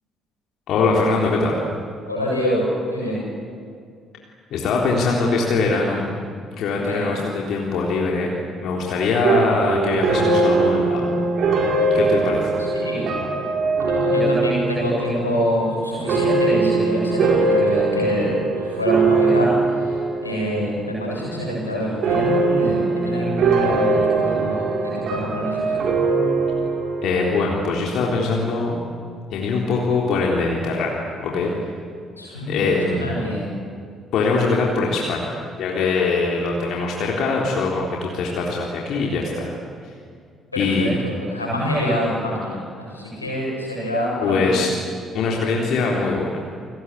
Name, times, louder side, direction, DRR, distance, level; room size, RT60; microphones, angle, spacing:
voice 1, 0.7-1.6 4.5-6.1 6.6-8.3 8.6-11.1 11.9-12.6 27.0-28.8 29.3-31.5 32.5-33.1 34.1-35.3 35.6-39.5 40.6-41.0 44.2-44.7 45.1-46.4, left 3 dB, 55° left, -2 dB, 3.7 m, -22 dB
voice 2, 2.1-3.2 6.8-7.1 12.7-13.1 13.8-25.8 32.2-33.4 40.5-44.6, equal, 90° left, -4 dB, 7.8 m, -26 dB
sound 1, 9.2-20.7 21.0-21.6 22.0-27.4, right 3 dB, 55° right, 5.2 m, -21 dB
29.5 x 22.5 x 8.5 m, 2.2 s
figure-of-eight pair, 45°, 0 cm